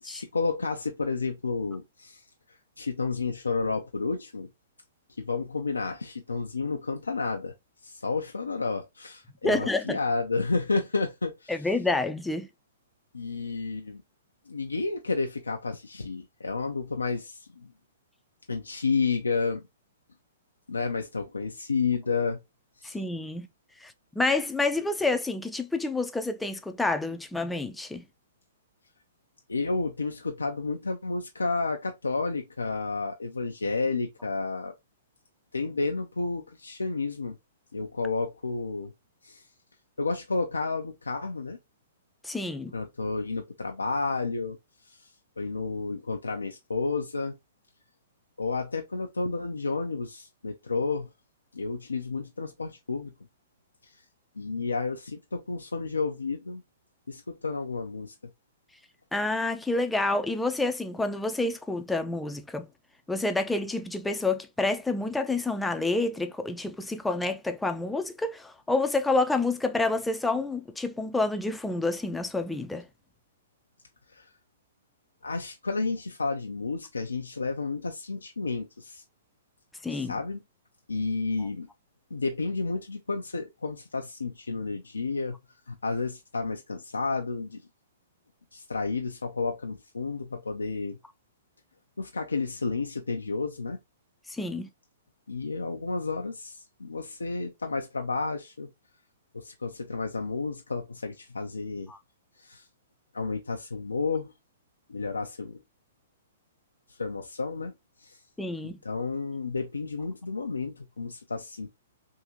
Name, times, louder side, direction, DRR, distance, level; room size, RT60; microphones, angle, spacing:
voice 1, 0.0-2.2 2.8-4.5 5.2-7.5 7.8-11.7 13.1-14.0 14.5-17.7 18.5-19.6 20.7-22.4 22.8-23.0 29.5-34.7 35.5-37.4 37.7-38.9 39.2-39.4 40.0-41.6 42.7-44.6 44.8-47.4 48.4-51.1 51.5-53.1 53.8-54.0 54.4-56.6 57.1-58.1 74.1-74.3 75.2-79.0 79.9-80.4 80.9-81.7 82.1-85.4 85.7-87.6 88.5-91.0 92.0-93.8 95.3-98.7 99.3-101.9 102.4-102.7 103.1-104.3 104.9-105.6 106.9-107.7 108.0-108.2 108.6-111.7, left 4 dB, 90° left, 0.5 m, -31 dB
voice 2, 9.4-10.0 11.5-12.5 22.8-23.5 23.8-28.0 42.2-42.7 59.1-62.7 63.1-72.8 79.8-80.1 94.3-94.7 101.9-102.0 108.4-108.8, left 2 dB, 5° left, 0.5 m, -28 dB
3.6 x 2.8 x 2.9 m
hypercardioid pair, 120°, 0 cm